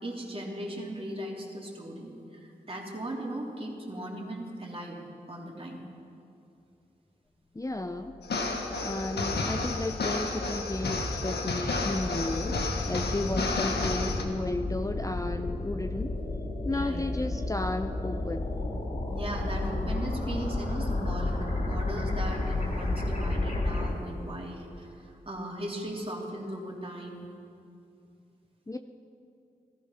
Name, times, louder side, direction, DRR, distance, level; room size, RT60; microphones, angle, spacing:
voice 1, 0.0-5.0 5.3-5.8 13.2-13.4 16.7-17.1 19.1-27.3, right 1 dB, 35° right, -2 dB, 3.5 m, -38 dB
voice 2, 7.5-8.1 8.8-16.1 16.6-18.5 28.7-28.8, left 2 dB, 20° left, 7 dB, 0.7 m, -33 dB
sound 1, 8.0-23.9, left 2 dB, 50° left, 3.6 m, -33 dB
sound 2, 8.2-14.2, left 3 dB, 80° left, 1.5 m, -31 dB
15.0 x 13.5 x 5.8 m, 2.6 s
cardioid pair, 40°, 17 cm